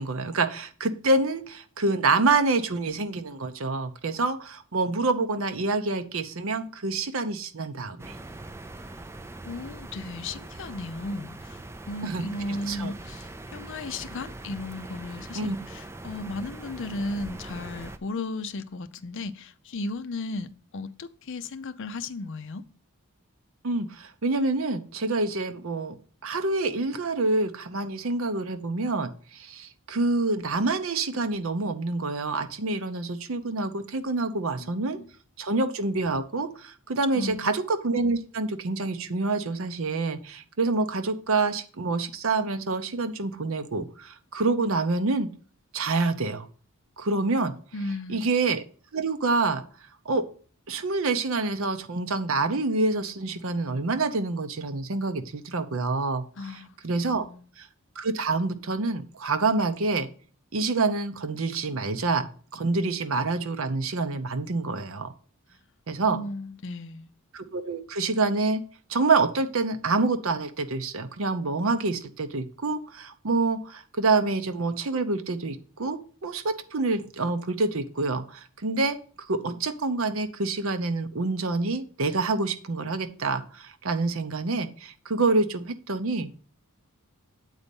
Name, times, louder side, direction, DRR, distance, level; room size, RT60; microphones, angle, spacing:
voice 1, 0.0-8.1 12.0-12.2 12.7-12.9 15.3-15.6 23.6-25.9 26.2-35.0 35.4-45.3 45.7-46.5 47.0-47.5 48.1-48.6 48.9-49.6 50.0-50.2 50.7-56.2 56.8-57.3 57.6-57.7 58.0-60.1 60.5-65.1 65.9-66.2 67.3-68.6 68.9-79.0 79.3-86.3, right 3 dB, 65° right, 0.7 m, -27 dB
sound 1, 8.0-18.0, right 2 dB, 10° right, 0.4 m, -42 dB
voice 2, 9.4-11.6 11.9-22.6 34.6-35.1 37.1-37.5 47.7-48.3 56.4-56.7 57.1-57.4 66.1-67.1, left 2 dB, 55° left, 0.5 m, -35 dB
7.9 x 4.1 x 5.3 m
head